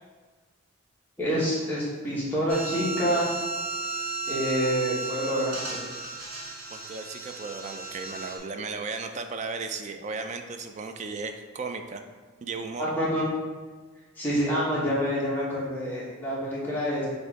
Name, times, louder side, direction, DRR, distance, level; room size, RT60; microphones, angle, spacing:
voice 1, 1.2-3.3 4.3-5.8 12.8-13.2 14.2-17.1, equal, 10° left, -8 dB, 1.2 m, -27 dB
sound 1, 2.5-8.4, right 4 dB, 90° right, 1.3 m, -34 dB
voice 2, 6.7-12.0 12.4-12.9, right 4 dB, 35° right, 6 dB, 0.3 m, -35 dB
4.4 x 2.6 x 4.6 m, 1.4 s
head